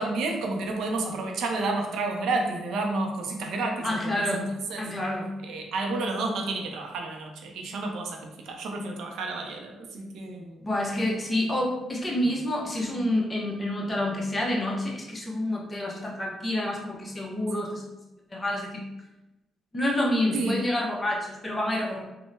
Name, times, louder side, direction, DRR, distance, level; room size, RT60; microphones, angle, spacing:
voice 1, 0.0-4.4 4.7-4.9 5.4-10.6 20.3-20.6, right 3 dB, 80° right, 2 dB, 0.5 m, -30 dB
voice 2, 3.8-4.5 4.8-5.3 10.6-18.0 18.3-18.9 19.7-22.0, left 1 dB, 20° left, -3 dB, 0.8 m, -28 dB
3.6 x 2.1 x 2.6 m, 1.0 s
cardioid pair, 90°, 0 cm